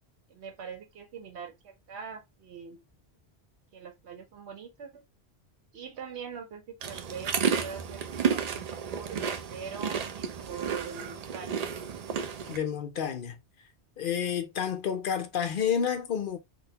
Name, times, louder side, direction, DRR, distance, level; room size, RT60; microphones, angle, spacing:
voice 1, 0.3-2.8 3.7-5.0 5.7-9.2 9.5-11.7, right 6 dB, 85° right, 1.2 m, -43 dB
sound 1, 6.8-12.6, right 7 dB, 55° right, 0.4 m, -32 dB
voice 2, 12.5-13.4 14.0-16.4, left 8 dB, 60° left, 0.7 m, -30 dB
3.7 x 2.5 x 2.7 m
omnidirectional pair, 1.1 m